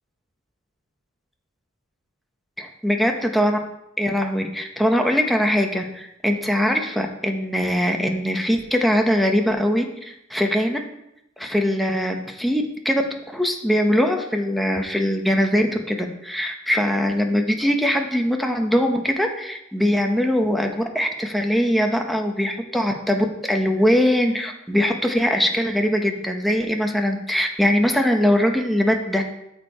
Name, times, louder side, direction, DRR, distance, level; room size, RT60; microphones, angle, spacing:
voice 1, 2.8-3.6 4.0-10.8 11.4-13.0 13.3-29.2, equal, ahead, 3 dB, 0.9 m, -21 dB
13.0 x 4.5 x 4.3 m, 0.83 s
head